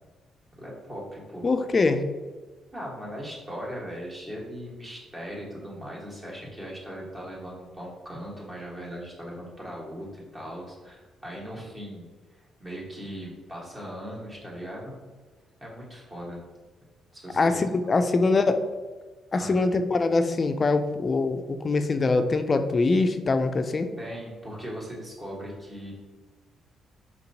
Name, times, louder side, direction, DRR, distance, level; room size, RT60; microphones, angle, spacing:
voice 1, 0.6-1.5 2.7-15.0 15.6-16.4 17.1-17.9 19.3-19.6 24.0-25.9, equal, 25° right, -4 dB, 1.3 m, -39 dB
voice 2, 1.4-2.0 17.3-18.7 19.3-23.9, left 3 dB, 35° left, 9 dB, 0.3 m, -23 dB
4.4 x 2.8 x 2.7 m, 1.3 s
cardioid pair, 90°, 0 cm